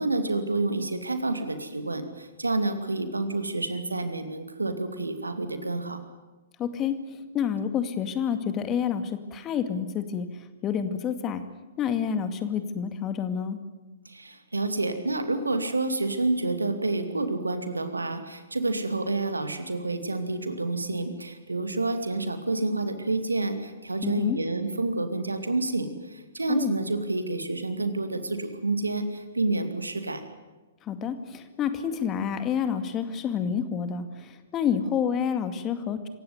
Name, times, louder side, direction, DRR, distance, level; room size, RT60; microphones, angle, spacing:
voice 1, 0.0-6.0 14.0-30.2, right 2 dB, 85° right, 8 dB, 2.5 m, -29 dB
voice 2, 6.6-11.4 11.8-13.6 24.0-24.4 26.5-26.7 30.8-36.1, left 7 dB, 25° left, 9 dB, 2.2 m, -29 dB
26.5 x 16.0 x 9.7 m, 1.2 s
figure-of-eight pair, 115°, 0 cm